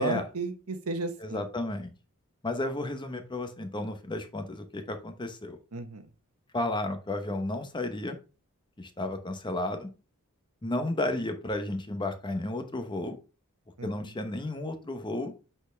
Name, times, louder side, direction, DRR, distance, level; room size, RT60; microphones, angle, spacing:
voice 1, 0.0-1.4 5.7-6.0 13.8-14.1, right 3 dB, 75° right, 8 dB, 1.1 m, -33 dB
voice 2, 1.2-1.9 2.4-5.6 6.5-8.2 8.8-9.9 10.6-13.2 13.8-15.3, left 2 dB, 20° left, 7 dB, 0.9 m, -32 dB
7.8 x 4.4 x 3.4 m, 0.31 s
head